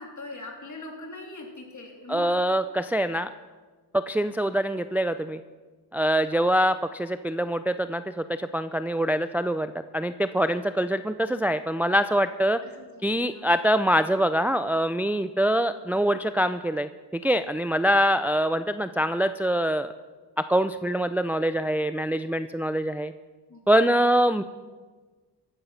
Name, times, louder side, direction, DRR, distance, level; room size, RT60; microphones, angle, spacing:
voice 1, 0.0-2.4 12.6-13.5 23.5-23.9, left 2 dB, 45° left, 1 dB, 3.6 m, -42 dB
voice 2, 2.1-3.3 3.9-5.4 5.9-12.6 13.0-19.9 20.4-23.1 23.7-24.4, equal, 5° right, 11 dB, 0.4 m, -24 dB
15.5 x 12.0 x 5.8 m, 1.4 s
cardioid pair, 80°, 41 cm